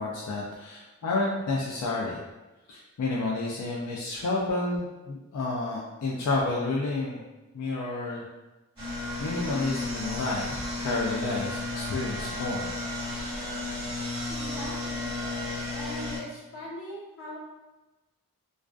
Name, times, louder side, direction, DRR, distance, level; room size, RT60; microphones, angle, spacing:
voice 1, 0.0-2.2 2.7-7.2 7.5-8.2 9.2-12.7, left 3 dB, 90° left, -3 dB, 0.4 m, -30 dB
sound 1, 8.8-16.2, left 2 dB, 20° right, 1.3 m, -33 dB
voice 2, 14.3-15.2 15.7-17.4, equal, 60° left, -7 dB, 0.9 m, -40 dB
2.4 x 2.3 x 2.2 m, 1.1 s
head